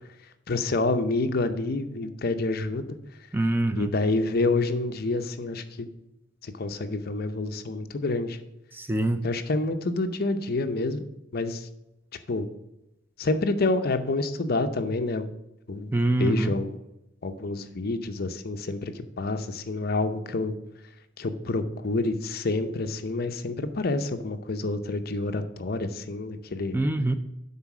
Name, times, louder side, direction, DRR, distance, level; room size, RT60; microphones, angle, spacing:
voice 1, 0.5-3.0 3.8-5.9 6.4-8.4 9.2-11.0 11.3-11.7 12.3-12.5 13.2-15.3 15.7-15.9 16.2-16.8 17.2-20.5 21.2-26.8, left 2 dB, 50° left, 8 dB, 0.6 m, -28 dB
voice 2, 3.3-3.9 8.7-9.2 15.9-16.5 26.7-27.2, right 2 dB, 10° right, 9 dB, 0.3 m, -24 dB
9.5 x 4.0 x 6.0 m, 0.91 s
head